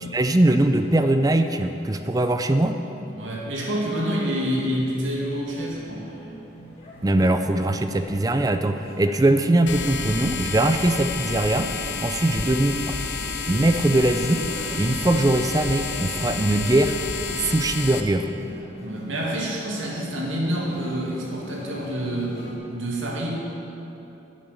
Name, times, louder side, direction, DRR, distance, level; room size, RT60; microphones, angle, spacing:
voice 1, 0.1-2.8 7.0-11.7 12.0-13.0 13.5-14.4 14.7-17.0 17.4-18.3, right 1 dB, 20° right, 8 dB, 0.4 m, -21 dB
voice 2, 3.1-6.1 18.8-22.4 22.7-23.3, equal, 90° right, -3 dB, 2.2 m, -27 dB
sound 1, 5.4-22.5, equal, 30° left, 1.9 m, -42 dB
sound 2, 9.7-18.0, left 5 dB, 65° left, 0.7 m, -30 dB
9.2 x 8.8 x 6.7 m, 3.0 s
head